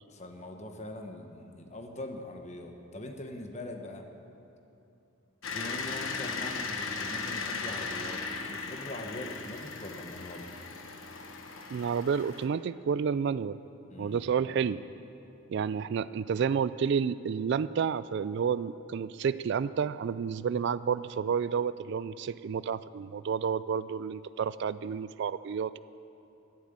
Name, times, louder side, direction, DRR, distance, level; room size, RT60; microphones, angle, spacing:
voice 1, 0.1-4.1 5.5-10.5 13.9-14.2, left 1 dB, 35° left, 4 dB, 1.3 m, -42 dB
sound 1, 5.4-12.5, left 4 dB, 70° left, 1.2 m, -37 dB
voice 2, 11.7-13.6 14.0-14.8 15.5-25.8, right 6 dB, 55° right, 16 dB, 0.3 m, -30 dB
13.0 x 11.5 x 8.8 m, 2.8 s
head